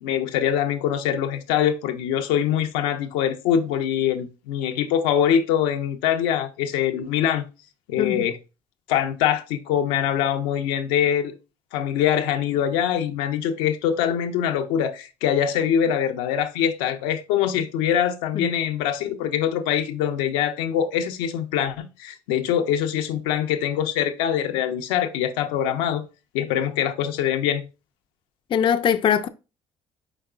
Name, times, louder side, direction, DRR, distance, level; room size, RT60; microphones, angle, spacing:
voice 1, 0.0-7.4 7.9-8.4 8.9-11.3 11.7-26.0 26.3-27.7, left 9 dB, 90° left, 0.5 m, -23 dB
voice 2, 28.5-29.3, left 8 dB, 45° left, 0.4 m, -21 dB
4.9 x 4.7 x 2.3 m
supercardioid pair, 80°, 12 cm